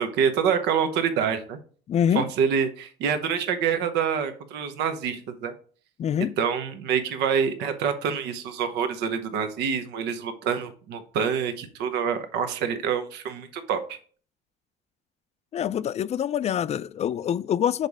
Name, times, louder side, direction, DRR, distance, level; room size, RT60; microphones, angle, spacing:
voice 1, 0.0-1.6 2.1-5.5 6.4-14.0, right 7 dB, 85° right, 0.9 m, -26 dB
voice 2, 1.9-2.3 6.0-6.4 15.5-17.9, left 9 dB, 40° left, 0.4 m, -25 dB
6.7 x 4.1 x 4.8 m
cardioid pair, 110°, 17 cm